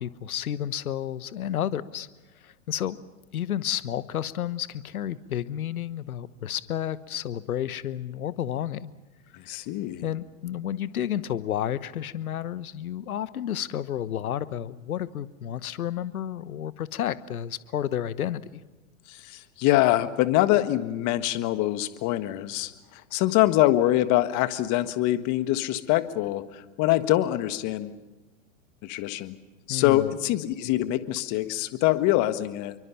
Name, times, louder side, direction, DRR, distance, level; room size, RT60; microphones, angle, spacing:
voice 1, 0.0-2.1 2.4-3.0 3.3-8.9 10.0-18.6 29.7-30.1, left 10 dB, 75° left, 16 dB, 1.2 m, -31 dB
voice 2, 9.3-10.0 19.1-28.0 28.8-29.4 29.7-32.7, left 15 dB, 40° left, 11 dB, 1.7 m, -24 dB
28.0 x 24.0 x 5.7 m, 1.2 s
hypercardioid pair, 100°, 43 cm